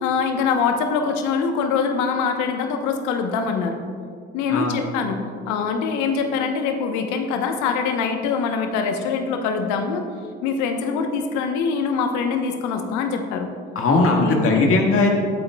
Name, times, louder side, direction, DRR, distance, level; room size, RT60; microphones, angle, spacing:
voice 1, 0.0-3.8 4.3-10.1 10.4-13.5 14.2-14.7, left 5 dB, 65° left, 6 dB, 1.0 m, -24 dB
voice 2, 13.8-15.1, left 3 dB, 45° left, 1 dB, 1.8 m, -18 dB
18.5 x 8.7 x 2.3 m, 2.3 s
figure-of-eight pair, 55°, 32 cm